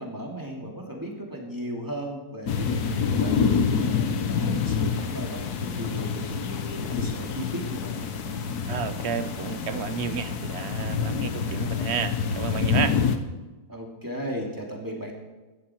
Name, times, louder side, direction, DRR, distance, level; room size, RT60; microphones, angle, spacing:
voice 1, 0.0-8.1 13.7-15.1, equal, 10° right, -1 dB, 2.6 m, -36 dB
sound 1, 2.5-13.2, left 6 dB, 75° left, 1.5 m, -27 dB
sound 2, 8.3-12.6, equal, 35° left, 4.0 m, -44 dB
voice 2, 8.6-13.0, right 7 dB, 55° right, 12 dB, 0.8 m, -31 dB
16.5 x 12.0 x 4.5 m, 1.2 s
omnidirectional pair, 1.7 m